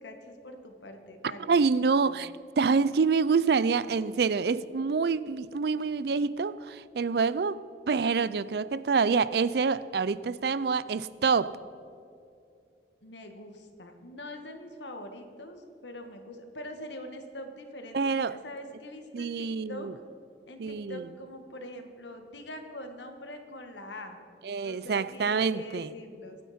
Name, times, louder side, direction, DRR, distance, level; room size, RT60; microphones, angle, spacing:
voice 1, 0.0-2.2 13.0-19.9 20.5-24.2 24.6-26.4, left 1 dB, 80° left, 1.7 m, -44 dB
voice 2, 1.5-2.3 2.6-11.6 17.9-18.4 19.1-19.9 20.6-21.0 24.4-25.9, right 5 dB, 60° right, 0.4 m, -27 dB
24.0 x 9.3 x 4.3 m
head